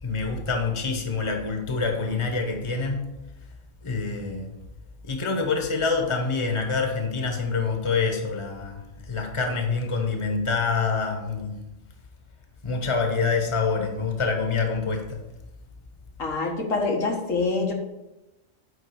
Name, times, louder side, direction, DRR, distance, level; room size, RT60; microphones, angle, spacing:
voice 1, 0.0-3.0 3.8-4.5 5.0-11.6 12.6-15.2, left 4 dB, 25° left, 3 dB, 1.1 m, -26 dB
voice 2, 16.2-17.7, left 3 dB, 85° left, 0 dB, 1.9 m, -25 dB
9.1 x 3.7 x 6.9 m, 0.97 s
omnidirectional pair, 1.3 m